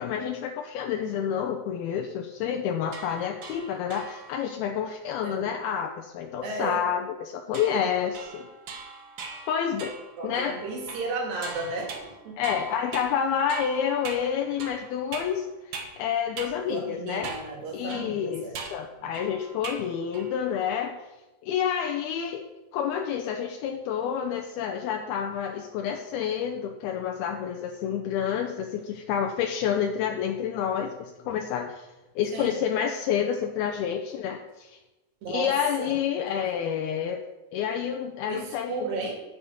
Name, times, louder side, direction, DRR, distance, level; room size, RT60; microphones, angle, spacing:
voice 1, 0.0-8.5 9.5-9.9 10.2-10.6 12.4-17.3 17.7-18.4 18.7-21.0 21.4-22.5 22.7-31.9 32.2-34.8 35.3-37.2 37.5-38.9, left 8 dB, 80° left, 3 dB, 2.5 m, -29 dB
sound 1, 2.9-4.5 7.5-16.0 16.4-16.5 17.2-17.6 17.9-19.9 20.1-20.5, right 4 dB, 80° right, 1.2 m, -41 dB
voice 2, 6.4-6.8 10.2-12.4 16.7-18.6 19.0-19.1 32.3-32.7 35.2-35.9 38.2-39.1, right 3 dB, 65° right, 0 dB, 3.8 m, -34 dB
9.4 x 6.9 x 7.0 m, 1.1 s
omnidirectional pair, 4.6 m